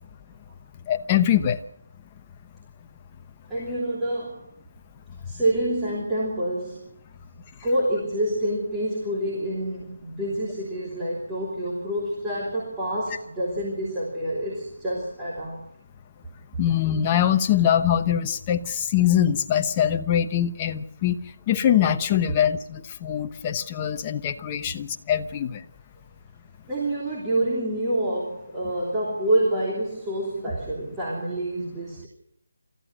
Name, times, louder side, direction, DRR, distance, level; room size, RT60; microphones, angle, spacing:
voice 1, 0.9-1.6 16.6-21.2 21.5-25.6, left 10 dB, 20° left, 6 dB, 0.9 m, -23 dB
voice 2, 3.5-4.4 5.2-6.8 7.6-15.6 26.7-32.1, right 1 dB, 10° right, -6 dB, 3.1 m, -27 dB
28.5 x 14.0 x 6.6 m, 0.75 s
figure-of-eight pair, 165°, 0 cm